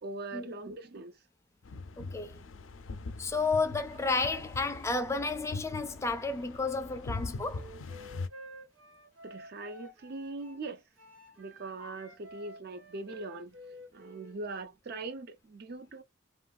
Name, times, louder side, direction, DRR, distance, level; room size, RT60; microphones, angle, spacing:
voice 1, 0.0-1.2 9.2-10.8 11.4-13.6 13.9-16.0, right 3 dB, 50° right, 0.5 m, -41 dB
sound 1, 1.6-8.3, left 3 dB, 75° left, 0.5 m, -42 dB
voice 2, 2.0-2.3 3.2-7.7, left 3 dB, 15° left, 0.4 m, -32 dB
Wind instrument woodwind instrument, 7.4-10.6 11.0-14.4, equal, 90° right, 1.5 m, -51 dB
3.1 x 2.3 x 2.3 m
head